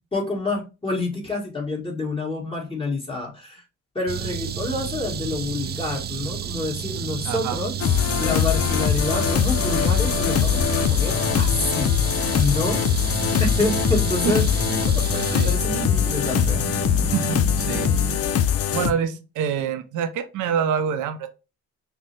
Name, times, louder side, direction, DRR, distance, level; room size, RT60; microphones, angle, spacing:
voice 1, 0.1-3.6 4.0-7.7 8.2-11.9 12.4-12.8 13.4-14.5 14.9-16.6, left 2 dB, 15° left, 1.7 m, -28 dB
sound 1, 4.1-18.2, right 8 dB, 35° right, 0.4 m, -30 dB
voice 2, 7.2-7.6 14.2-14.3 14.7-14.8 15.3-15.5 17.1-17.9 18.7-21.3, right 7 dB, 80° right, 0.6 m, -26 dB
sound 2, 7.8-18.9, left 9 dB, 50° left, 0.5 m, -22 dB
5.8 x 2.1 x 3.2 m
cardioid pair, 90°, 30 cm